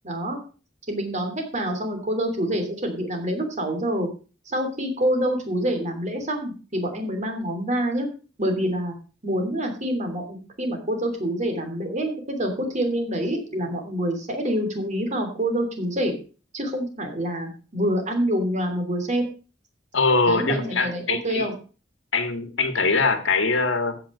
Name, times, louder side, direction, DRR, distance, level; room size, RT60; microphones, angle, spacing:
voice 1, 0.0-0.4 0.9-4.1 4.5-8.1 8.4-9.0 9.2-16.1 16.5-19.2 20.2-21.5, equal, 40° right, 4 dB, 3.1 m, -26 dB
voice 2, 19.9-21.5 22.1-24.0, left 3 dB, 80° left, 9 dB, 1.7 m, -22 dB
15.0 x 5.9 x 5.5 m, 0.36 s
head